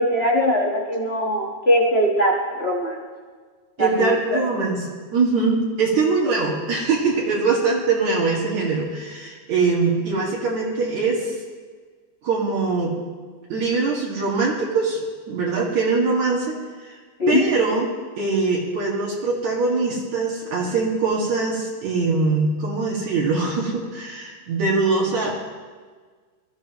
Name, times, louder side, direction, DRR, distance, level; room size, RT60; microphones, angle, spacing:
voice 1, 0.0-3.0 3.8-4.4 6.2-6.3 17.2-17.4, left 1 dB, 50° left, -1 dB, 0.7 m, -21 dB
voice 2, 3.8-11.3 12.2-12.9 13.5-15.0 15.3-16.6 16.8-16.9 17.3-17.9 18.2-25.3, right 4 dB, 65° right, -4 dB, 3.2 m, -22 dB
22.5 x 14.0 x 3.0 m, 1.5 s
omnidirectional pair, 3.6 m